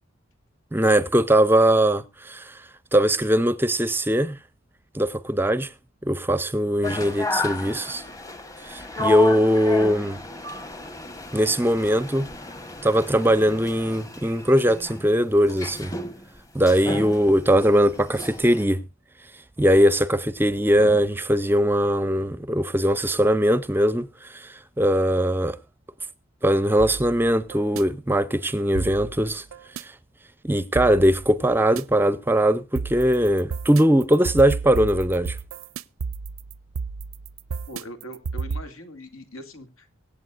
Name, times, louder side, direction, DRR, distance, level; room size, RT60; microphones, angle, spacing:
voice 1, 0.7-2.6 2.9-4.4 4.9-5.7 6.0-8.0 8.7-10.2 11.3-12.3 12.8-15.9 16.5-18.8 19.6-25.6 26.4-29.4 29.8-29.9 30.4-35.4, equal, 10° right, 0.5 m, -20 dB
sound 1, 6.8-18.6, left 2 dB, 15° left, 1.1 m, -33 dB
sound 2, 26.8-27.8 28.7-29.8 30.7-31.8 32.7-38.6, right 4 dB, 85° right, 0.5 m, -32 dB
voice 2, 37.7-39.9, equal, 85° left, 2.4 m, -41 dB
24.0 x 8.5 x 2.4 m
head